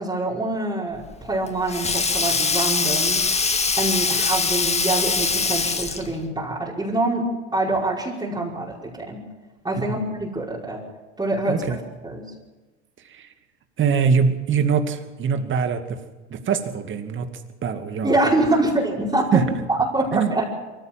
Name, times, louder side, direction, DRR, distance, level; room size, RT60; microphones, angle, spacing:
voice 1, 0.0-3.2 3.8-9.2 9.6-10.8 11.2-11.6 12.0-12.2 18.0-19.4 19.7-20.5, right 2 dB, 15° right, -6 dB, 5.3 m, -25 dB
Sink (filling or washing), 1.0-6.2, left 4 dB, 20° left, 1.9 m, -23 dB
voice 2, 11.4-11.8 13.0-13.3 13.8-16.0 16.3-17.3 17.6-18.2 19.3-19.4 20.1-20.3, right 6 dB, 35° right, 7 dB, 2.5 m, -23 dB
23.5 x 15.5 x 7.6 m, 1.2 s
hypercardioid pair, 80°, 34 cm